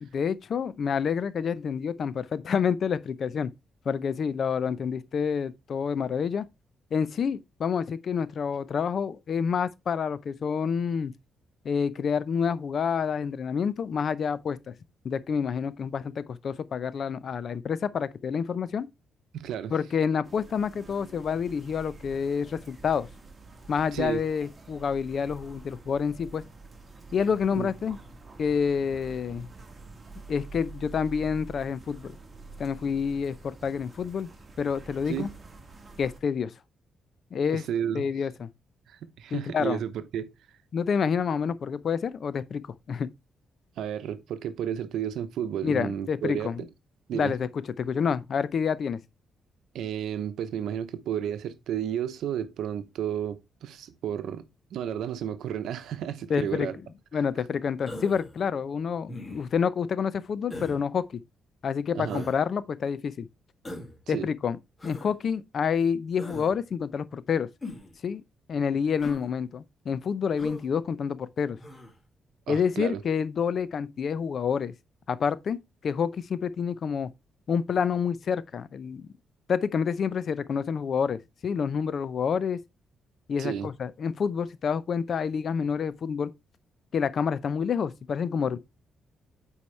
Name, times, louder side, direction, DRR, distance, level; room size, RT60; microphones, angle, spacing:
voice 1, 0.0-3.5 3.9-6.4 6.9-11.1 11.6-14.7 15.0-18.9 19.7-23.1 23.7-26.4 27.1-28.0 28.4-29.5 30.3-32.2 32.6-34.3 34.6-35.3 36.0-36.5 37.3-37.6 37.9-38.5 39.3-39.8 40.7-43.1 45.6-46.6 47.1-49.0 56.3-56.7 57.1-61.2 61.6-63.3 64.1-64.6 64.8-67.5 68.0-68.2 68.5-71.6 72.5-74.7 75.1-75.6 75.8-77.1 77.5-79.1 79.5-82.6 83.3-86.3 86.9-88.6, left 6 dB, 55° left, 0.6 m, -28 dB
voice 2, 19.3-19.7 23.9-24.2 27.6-27.7 35.1-35.3 37.5-38.1 38.9-40.3 43.8-46.7 47.1-47.3 49.7-54.5 54.7-56.8 61.9-62.3 64.1-64.3 72.5-73.0 83.4-83.7, right 9 dB, 80° right, 0.8 m, -32 dB
sound 1, 20.2-36.2, right 3 dB, 25° right, 1.7 m, -47 dB
Human voice, 57.9-58.3 59.1-59.6 60.5-60.8 62.0-62.4 63.6-64.0 64.8-65.1 66.2-66.5 67.6-68.0 69.0-69.2 70.4-70.7 71.6-71.9, left 2 dB, 25° left, 2.3 m, -40 dB
8.5 x 4.7 x 3.2 m
cardioid pair, 105°, 0 cm